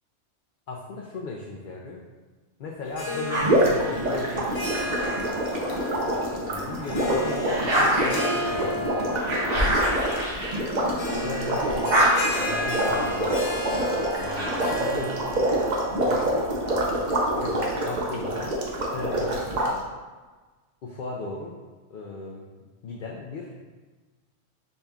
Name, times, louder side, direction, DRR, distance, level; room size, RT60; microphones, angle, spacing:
voice 1, 0.7-2.0 2.6-4.6 6.4-9.3 11.2-12.1 12.4-13.4 14.2-15.3 16.0-16.5 17.4-18.6 18.9-19.8 20.8-21.6 21.9-22.4 22.8-23.5, left 3 dB, 60° left, -2 dB, 0.6 m, -37 dB
Harp, 2.9-16.6, left 1 dB, 75° left, 1.2 m, -34 dB
sound 1, 3.3-6.0 6.5-11.3 11.6-14.9, right 1 dB, 75° right, 1.7 m, -28 dB
sound 2, 3.4-19.7, right 1 dB, 45° right, 0.8 m, -26 dB
5.3 x 4.1 x 2.3 m, 1.3 s
omnidirectional pair, 1.2 m